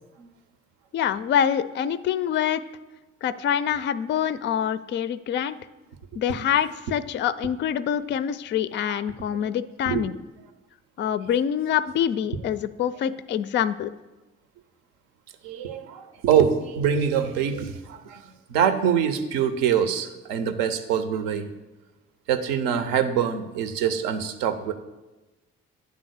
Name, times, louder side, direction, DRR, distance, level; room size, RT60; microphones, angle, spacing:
voice 1, 0.9-2.6 3.2-5.6 6.2-10.1 11.0-13.9, left 9 dB, 30° left, 15 dB, 0.4 m, -25 dB
voice 2, 15.4-18.2 18.5-21.5 22.3-24.7, right 8 dB, 70° right, 9 dB, 0.7 m, -24 dB
9.4 x 3.8 x 6.3 m, 1.1 s
figure-of-eight pair, 45°, 37 cm